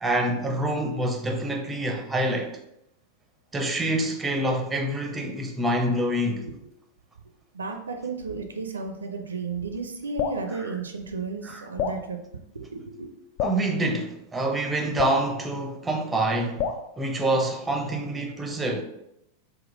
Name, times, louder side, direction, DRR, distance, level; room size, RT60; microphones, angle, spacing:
voice 1, 0.0-2.5 3.5-6.5 10.5-10.7 11.4-11.6 13.4-16.6 17.0-18.8, right 1 dB, 10° right, 0.5 m, -26 dB
voice 2, 7.5-12.2 12.5-13.1, right 4 dB, 75° right, 0.4 m, -33 dB
Drip, 10.2-10.4 11.8-12.0 13.4-13.6 15.0-15.2 16.6-16.9, left 6 dB, 50° left, 0.3 m, -28 dB
3.6 x 2.2 x 3.8 m
figure-of-eight pair, 90°, 0 cm